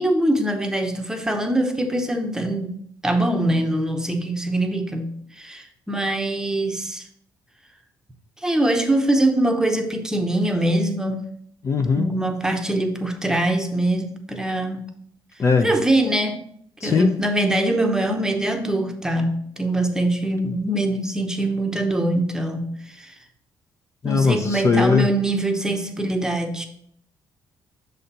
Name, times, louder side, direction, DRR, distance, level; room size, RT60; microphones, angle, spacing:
voice 1, 0.0-7.0 8.4-11.2 12.0-14.8 15.6-16.4 16.8-23.1 24.0-26.7, right 1 dB, 5° right, 4 dB, 0.8 m, -23 dB
voice 2, 11.6-12.1 15.4-15.7 16.8-17.1 24.0-25.1, left 4 dB, 35° left, 7 dB, 0.5 m, -19 dB
6.4 x 4.2 x 4.0 m, 0.66 s
cardioid pair, 110°, 8 cm